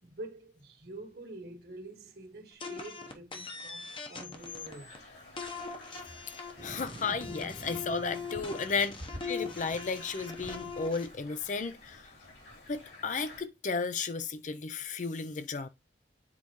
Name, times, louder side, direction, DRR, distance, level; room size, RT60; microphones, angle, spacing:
voice 1, 0.0-4.9, right 2 dB, 60° right, 1.7 m, -46 dB
sound 1, 2.6-5.0 5.4-11.1, left 5 dB, 30° left, 0.9 m, -41 dB
sound 2, 4.4-13.4, left 2 dB, 70° left, 3.1 m, -52 dB
voice 2, 6.3-9.0 9.2-12.1 12.7-15.7, left 4 dB, 45° left, 0.5 m, -34 dB
sound 3, 6.6-13.2, right 2 dB, 25° right, 0.4 m, -51 dB
8.4 x 4.1 x 3.0 m
head